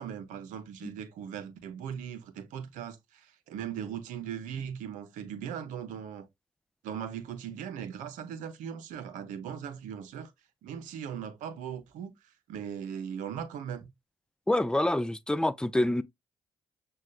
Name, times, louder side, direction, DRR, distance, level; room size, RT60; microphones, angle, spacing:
voice 1, 0.0-6.3 6.8-10.3 10.6-13.9, right 8 dB, 80° right, 0.7 m, -39 dB
voice 2, 14.5-16.0, left 1 dB, 5° left, 0.5 m, -26 dB
6.3 x 2.3 x 2.3 m
hypercardioid pair, 50°, 13 cm